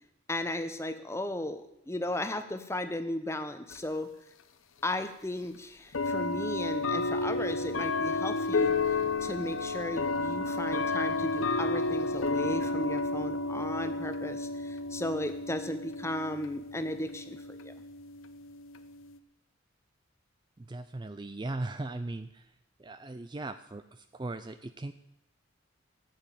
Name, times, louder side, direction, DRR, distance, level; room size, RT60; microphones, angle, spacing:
voice 1, 0.3-4.1 4.8-8.8 9.2-17.7, left 1 dB, 15° left, 9 dB, 0.8 m, -35 dB
sound 1, 3.7-3.8 4.9-5.0 5.9-19.2, left 3 dB, 80° left, 0.9 m, -32 dB
voice 2, 20.6-22.5 22.8-24.9, right 2 dB, 20° right, 11 dB, 0.4 m, -38 dB
13.5 x 7.5 x 9.0 m, 0.82 s
head